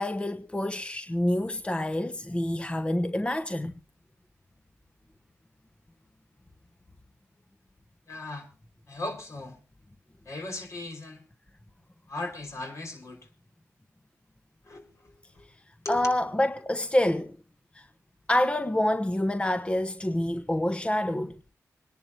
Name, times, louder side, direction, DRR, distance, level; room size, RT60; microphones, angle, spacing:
voice 1, 0.0-3.7 15.9-17.4 17.7-17.9 18.3-21.4, left 1 dB, 20° left, 1.1 m, -27 dB
voice 2, 8.1-8.5 8.9-9.6 10.2-11.2 12.1-13.2 14.7-14.8 15.4-15.5 15.8-16.1, left 2 dB, 55° left, 5.1 m, -37 dB
26.0 x 10.5 x 2.8 m
supercardioid pair, 50°, 6 cm